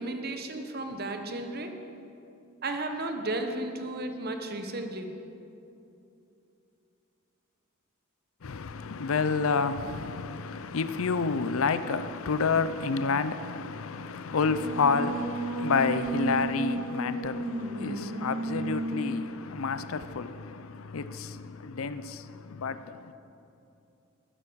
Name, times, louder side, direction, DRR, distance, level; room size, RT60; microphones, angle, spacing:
voice 1, 0.0-1.7 2.6-5.2, right 2 dB, 45° right, 1.1 m, -34 dB
voice 2, 8.4-23.1, left 4 dB, 75° left, 0.5 m, -29 dB
Singing, 14.3-19.2, right 2 dB, 70° right, 3.0 m, -33 dB
11.5 x 10.0 x 6.3 m
head